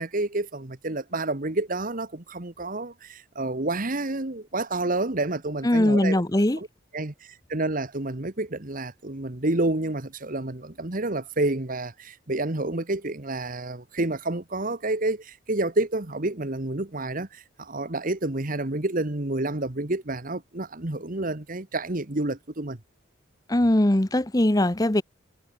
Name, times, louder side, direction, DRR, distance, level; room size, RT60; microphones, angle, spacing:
voice 1, 0.0-6.7 6.9-22.8, right 2 dB, 45° right, 1.6 m, -29 dB
voice 2, 5.6-6.6 23.5-25.0, left 1 dB, 20° left, 1.0 m, -21 dB
head